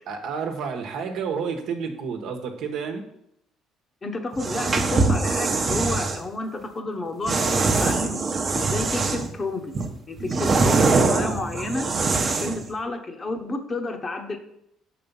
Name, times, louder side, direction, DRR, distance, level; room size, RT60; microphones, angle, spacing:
voice 1, 0.1-3.0 10.3-10.6, right 5 dB, 70° right, 5 dB, 1.1 m, -30 dB
voice 2, 4.0-8.2 8.5-9.8 10.1-11.9 12.3-14.4, left 2 dB, 30° left, 6 dB, 1.0 m, -31 dB
sound 1, 4.3-6.2 7.3-9.3 9.7-12.6, right 3 dB, 35° right, 0.9 m, -23 dB
5.9 x 4.9 x 5.4 m, 0.75 s
cardioid pair, 100°, 0 cm